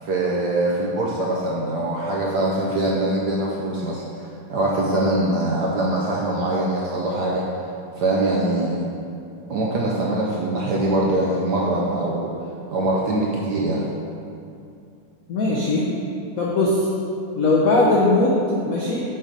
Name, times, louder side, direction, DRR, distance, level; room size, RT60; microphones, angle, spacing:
voice 1, 0.0-4.0 4.5-7.5 8.0-8.8 9.5-12.3 12.7-13.8, right 1 dB, 70° right, -3 dB, 1.0 m, -23 dB
voice 2, 15.3-15.8 16.4-16.9 17.4-18.3 18.7-19.0, left 2 dB, 75° left, -5 dB, 0.8 m, -19 dB
6.1 x 4.1 x 5.0 m, 2.5 s
omnidirectional pair, 2.4 m